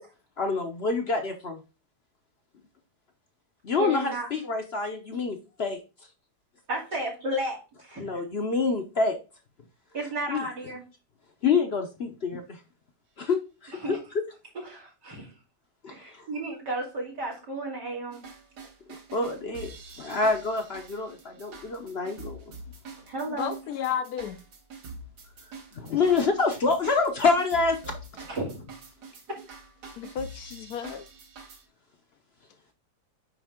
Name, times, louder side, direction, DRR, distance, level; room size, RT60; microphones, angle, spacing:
voice 1, 0.4-1.6 3.6-5.8 8.0-9.2 10.3-10.4 11.4-12.6 13.2-14.0 15.8-16.2 18.9-22.4 25.7-28.0, left 4 dB, 50° left, 0.9 m, -27 dB
voice 2, 3.8-4.3 6.7-8.1 9.9-10.8 13.8-14.0 14.7-15.3 15.9-18.2 23.0-23.6 28.3-28.7 29.3-29.4, right 1 dB, 90° right, 3.4 m, -33 dB
sound 1, 18.1-31.6, right 3 dB, 70° right, 1.9 m, -46 dB
voice 3, 23.3-24.4 30.0-31.0, left 9 dB, 70° left, 1.1 m, -32 dB
9.1 x 3.5 x 3.6 m
omnidirectional pair, 1.8 m